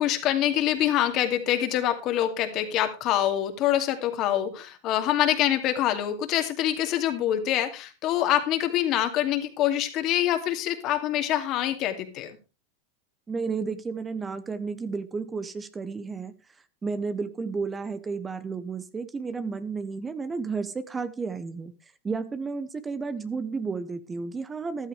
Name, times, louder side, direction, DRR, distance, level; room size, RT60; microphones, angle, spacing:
voice 1, 0.0-12.3, left 12 dB, 45° left, 7 dB, 2.5 m, -25 dB
voice 2, 13.3-16.3 16.8-21.7 22.0-24.9, right 4 dB, 20° right, 13 dB, 1.0 m, -32 dB
14.0 x 12.0 x 3.4 m, 0.32 s
hypercardioid pair, 100°, 0 cm